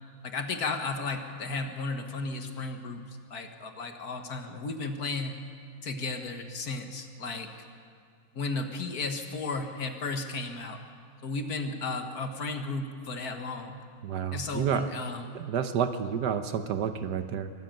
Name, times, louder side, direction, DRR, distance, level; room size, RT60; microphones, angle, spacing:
voice 1, 0.2-5.4 5.8-7.5 8.3-10.8 11.2-13.8 14.3-15.3, left 3 dB, 55° left, 5 dB, 1.9 m, -34 dB
voice 2, 14.0-14.9 15.3-17.5, right 7 dB, 65° right, 9 dB, 1.4 m, -30 dB
23.5 x 13.5 x 8.9 m, 2.2 s
omnidirectional pair, 2.0 m